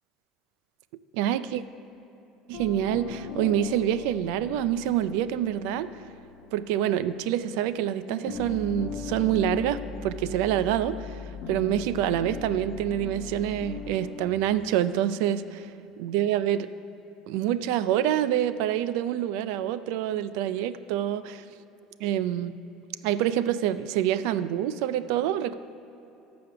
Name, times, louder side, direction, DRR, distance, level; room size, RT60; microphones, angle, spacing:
voice 1, 1.1-1.6 2.5-5.9 6.5-11.2 11.5-15.7 16.0-16.7 17.3-21.4 22.0-22.5 23.0-25.5, right 11 dB, 70° right, 14 dB, 0.4 m, -26 dB
sound 1, 2.5-7.8 8.1-14.4, left 5 dB, 55° left, 1.2 m, -39 dB
13.5 x 5.2 x 6.7 m, 2.9 s
cardioid pair, 160°, 0 cm